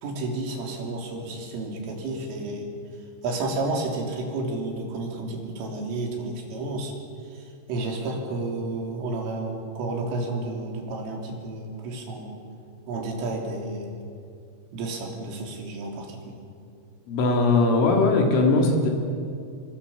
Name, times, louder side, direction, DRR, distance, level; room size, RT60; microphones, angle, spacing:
voice 1, 0.0-2.7 3.2-6.9 7.3-12.4 12.9-14.0 14.7-16.4, right 2 dB, 85° right, 1 dB, 6.0 m, -31 dB
voice 2, 17.1-18.9, left 3 dB, 75° left, 1 dB, 5.6 m, -20 dB
29.0 x 22.5 x 7.2 m, 2.4 s
omnidirectional pair, 5.6 m